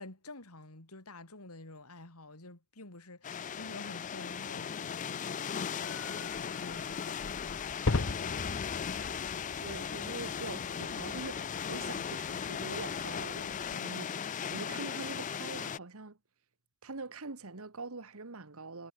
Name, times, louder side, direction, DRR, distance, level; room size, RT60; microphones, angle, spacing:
voice 1, 0.0-9.5, left 2 dB, 80° left, 4.1 m, -50 dB
sound 1, 3.2-15.8, left 7 dB, 35° left, 0.4 m, -37 dB
sound 2, 5.8-13.8, left 3 dB, 60° left, 1.0 m, -40 dB
voice 2, 9.6-16.2 16.8-18.9, right 3 dB, 70° right, 1.5 m, -44 dB
head